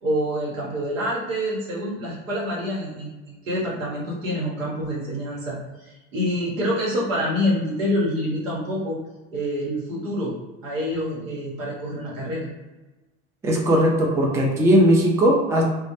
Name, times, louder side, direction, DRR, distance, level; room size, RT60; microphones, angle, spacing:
voice 1, 0.0-9.0 9.3-10.3 10.6-12.5, equal, 85° right, -5 dB, 1.0 m, -27 dB
voice 2, 13.4-15.6, equal, 10° right, -1 dB, 0.3 m, -18 dB
2.1 x 2.1 x 2.8 m, 1.1 s
hypercardioid pair, 80°, 38 cm